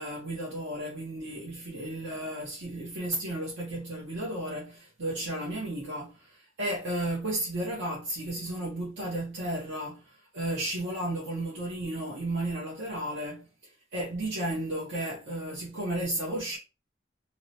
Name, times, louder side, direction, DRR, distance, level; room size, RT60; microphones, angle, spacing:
voice 1, 0.0-13.5 13.9-16.6, right 1 dB, 65° right, 0.7 m, -33 dB
2.7 x 2.1 x 2.7 m
head